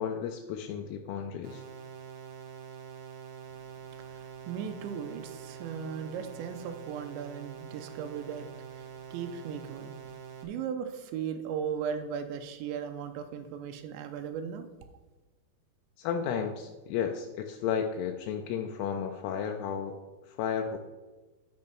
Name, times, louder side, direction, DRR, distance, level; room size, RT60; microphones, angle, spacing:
voice 1, 0.0-1.6 16.0-20.0 20.2-20.8, left 7 dB, 85° left, 4 dB, 2.3 m, -33 dB
sound 1, 1.4-10.4, right 8 dB, 65° right, 2.0 m, -45 dB
voice 2, 4.1-10.0 10.4-14.7, right 7 dB, 85° right, 8 dB, 2.9 m, -37 dB
9.8 x 5.3 x 5.8 m, 1.2 s
omnidirectional pair, 5.4 m